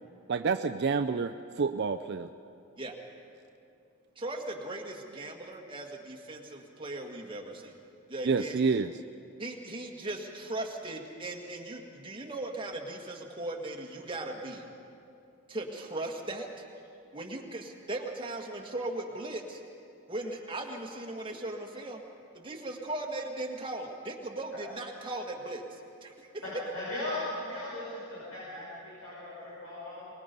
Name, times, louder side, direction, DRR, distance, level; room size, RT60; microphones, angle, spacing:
voice 1, 0.3-2.3 8.2-8.9, right 5 dB, 50° right, 8 dB, 0.4 m, -28 dB
voice 2, 4.2-7.8 8.1-8.6 9.4-14.7 15.5-16.5 17.1-19.6 20.1-22.0 22.3-26.3, right 2 dB, 25° right, 1 dB, 1.8 m, -38 dB
voice 3, 26.4-30.1, left 1 dB, 80° left, -9 dB, 6.2 m, -38 dB
23.5 x 21.0 x 5.3 m, 2.6 s
head